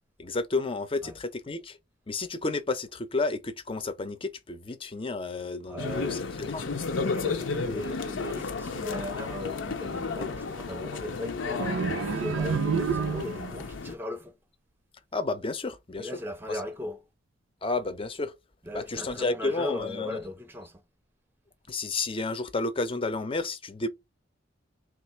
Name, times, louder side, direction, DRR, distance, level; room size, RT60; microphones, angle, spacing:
voice 1, 0.2-1.8 2.1-6.7 7.6-8.0 15.1-16.1 16.5-16.6 17.6-18.3 18.7-20.2 21.7-23.9, left 3 dB, 30° left, 0.6 m, -31 dB
voice 2, 5.7-6.3 7.0-11.8 12.1-14.4 16.0-17.0 18.6-20.8, left 1 dB, 10° right, 0.6 m, -37 dB
sound 1, 5.8-13.9, left 4 dB, 80° left, 0.6 m, -33 dB
sound 2, 11.6-13.6, right 5 dB, 85° right, 0.6 m, -29 dB
3.6 x 2.4 x 4.3 m
head